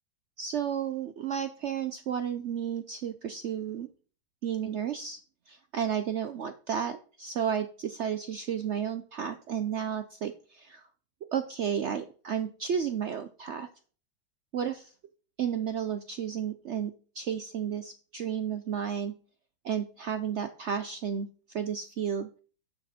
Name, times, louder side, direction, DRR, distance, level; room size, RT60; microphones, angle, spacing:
voice 1, 0.4-3.9 4.4-5.2 5.5-10.9 11.3-13.7 14.5-14.9 15.4-19.1 19.6-21.3 21.5-22.3, right 8 dB, 70° right, 9 dB, 0.6 m, -32 dB
9.9 x 5.9 x 4.2 m, 0.40 s
omnidirectional pair, 1.8 m